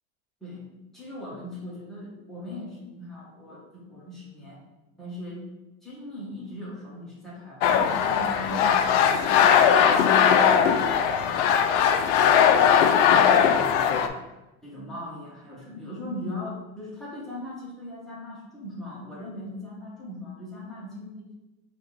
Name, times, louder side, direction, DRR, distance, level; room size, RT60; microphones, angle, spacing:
voice 1, 0.9-4.6 5.0-5.4 5.8-10.2 10.5-11.7 14.6-21.3, left 1 dB, ahead, -7 dB, 0.8 m, -39 dB
sound 1, 7.6-14.1, left 8 dB, 85° left, 0.5 m, -19 dB
4.7 x 2.4 x 3.8 m, 1.0 s
cardioid pair, 175°, 35 cm